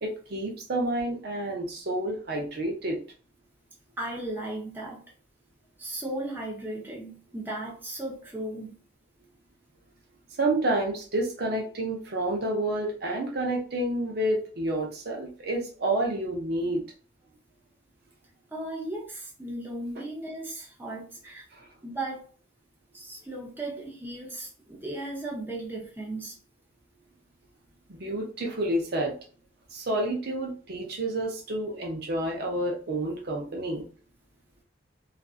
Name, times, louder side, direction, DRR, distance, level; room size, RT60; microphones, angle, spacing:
voice 1, 0.0-3.0 10.4-16.8 21.5-21.7 27.9-29.1 29.7-33.9, right 1 dB, 55° right, 0 dB, 0.6 m, -29 dB
voice 2, 4.0-5.0 5.8-8.7 18.5-21.4 21.8-22.2 22.9-26.4, right 1 dB, 10° right, -3 dB, 0.6 m, -36 dB
2.5 x 2.3 x 2.4 m, 0.40 s
head